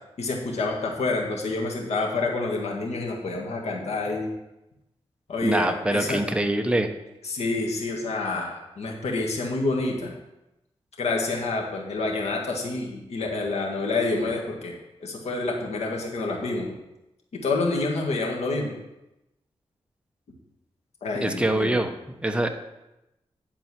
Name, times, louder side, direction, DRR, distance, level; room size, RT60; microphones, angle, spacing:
voice 1, 0.2-4.3 5.3-6.2 7.2-10.1 11.0-14.7 15.0-16.7 17.4-18.7 21.0-21.8, left 3 dB, 85° left, 0 dB, 1.8 m, -28 dB
voice 2, 5.4-6.9 21.2-21.9 22.2-22.5, right 1 dB, 10° right, 5 dB, 0.9 m, -24 dB
10.0 x 4.6 x 6.0 m, 0.93 s
cardioid pair, 80°, 11 cm